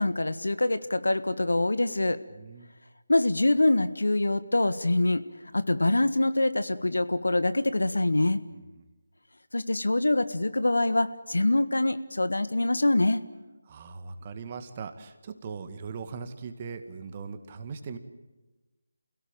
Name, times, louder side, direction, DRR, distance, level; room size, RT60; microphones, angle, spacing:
voice 1, 0.0-2.2 3.1-5.2 5.5-8.4 9.5-13.2, left 2 dB, 75° left, 12 dB, 1.6 m, -24 dB
voice 2, 2.3-2.7 8.5-8.8 13.7-18.0, right 5 dB, 30° right, 8 dB, 2.0 m, -40 dB
28.5 x 17.5 x 9.1 m, 1.1 s
figure-of-eight pair, 160°, 0 cm